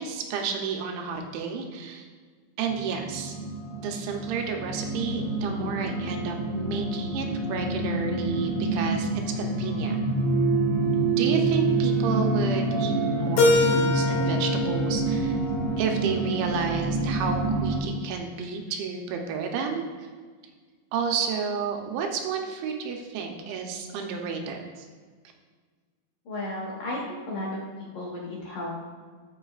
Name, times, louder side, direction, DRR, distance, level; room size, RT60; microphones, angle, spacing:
voice 1, 0.0-2.1 2.6-3.3 3.8-10.0 11.1-15.4 15.8-20.1 20.9-24.9, right 5 dB, 85° right, 2 dB, 3.3 m, -31 dB
sound 1, 2.6-17.8, right 2 dB, 25° right, 1.3 m, -27 dB
Keyboard (musical), 13.4-16.3, left 3 dB, 85° left, 3.9 m, -25 dB
voice 2, 26.3-27.5 27.8-28.7, left 1 dB, 60° left, -5 dB, 2.4 m, -34 dB
14.0 x 5.5 x 2.4 m, 1.6 s
omnidirectional pair, 5.2 m